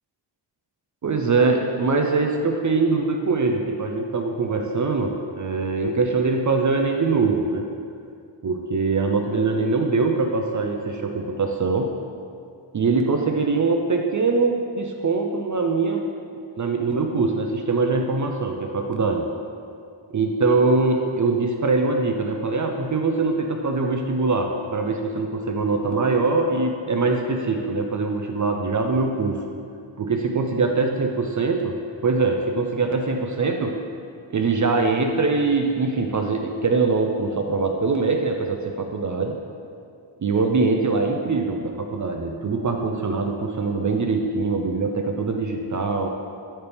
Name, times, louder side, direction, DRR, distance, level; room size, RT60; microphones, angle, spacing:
voice 1, 1.0-7.7 8.4-11.9 12.7-16.0 16.6-19.3 20.1-29.4 30.0-31.8 32.0-33.8 34.3-39.4 40.2-46.1, right 3 dB, 40° right, 3 dB, 0.5 m, -23 dB
11.0 x 4.3 x 3.4 m, 2.3 s
wide cardioid pair, 140°, 45 cm